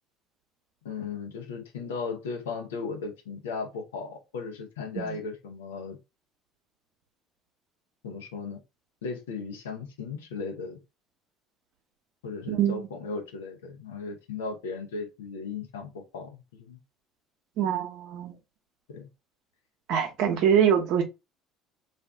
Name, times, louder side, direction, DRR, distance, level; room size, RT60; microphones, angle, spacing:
voice 1, 0.8-6.0 8.0-8.6 9.0-10.8 12.2-16.8 18.9-19.1, left 4 dB, 85° left, 0.7 m, -36 dB
voice 2, 12.5-12.9 17.6-18.3 19.9-21.0, right 8 dB, 65° right, 0.8 m, -24 dB
2.5 x 2.5 x 3.4 m
hypercardioid pair, 65°, 0 cm